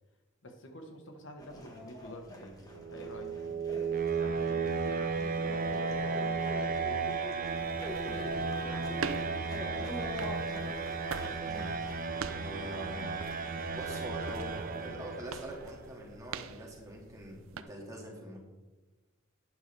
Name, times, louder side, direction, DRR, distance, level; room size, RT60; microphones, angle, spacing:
voice 1, 0.4-3.7 4.2-7.4 7.8-10.4, left 1 dB, 65° left, 4 dB, 1.4 m, -48 dB
sound 1, 1.4-11.9, equal, 20° left, 1.5 m, -46 dB
sound 2, 2.7-15.5, right 4 dB, 45° right, 0.8 m, -34 dB
sound 3, 7.5-17.6, right 5 dB, 85° right, 0.6 m, -45 dB
voice 2, 11.4-11.7 12.3-13.3 13.6-18.4, right 1 dB, 15° right, -2 dB, 2.2 m, -44 dB
12.0 x 9.5 x 3.4 m, 1.2 s
head